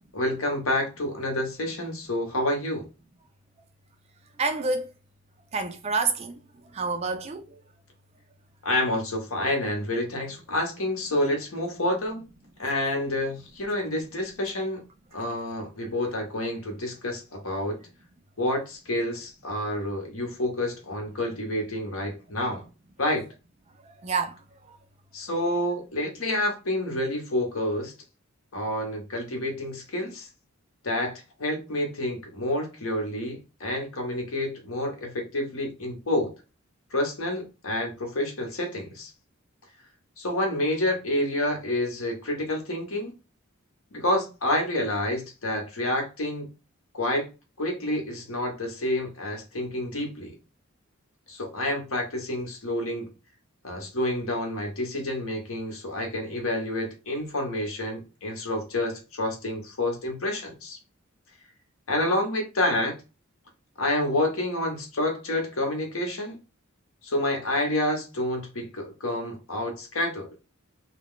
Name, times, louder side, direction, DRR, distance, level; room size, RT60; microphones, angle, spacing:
voice 1, 0.0-2.9 8.6-12.3 12.6-14.8 15.1-17.8 18.4-22.6 23.0-23.3 25.1-27.9 28.5-30.3 30.8-36.3 36.9-39.1 40.2-43.1 43.9-46.5 46.9-47.3 47.6-50.4 51.3-53.1 53.6-60.8 61.9-63.0 63.8-66.4 67.0-70.3, left 1 dB, 80° left, 1.0 m, -28 dB
voice 2, 4.4-4.9 5.5-6.3 6.8-7.4 24.0-24.3, right 4 dB, 30° right, 0.3 m, -27 dB
2.4 x 2.2 x 3.6 m
head